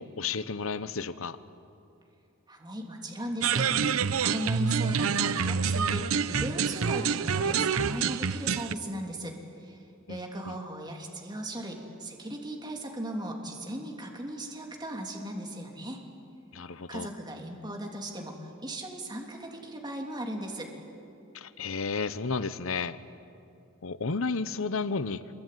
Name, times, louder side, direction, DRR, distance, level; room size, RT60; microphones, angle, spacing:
voice 1, 0.0-1.4 10.1-10.2 10.5-10.6 16.5-17.1 21.3-23.0 23.8-25.2, left 4 dB, 75° left, 14 dB, 0.9 m, -32 dB
voice 2, 2.5-9.8 10.1-16.0 16.9-20.7, right 1 dB, 20° right, 1 dB, 3.2 m, -37 dB
sound 1, 3.4-8.7, right 6 dB, 85° right, 0.8 m, -27 dB
27.0 x 23.0 x 9.4 m, 2.6 s
head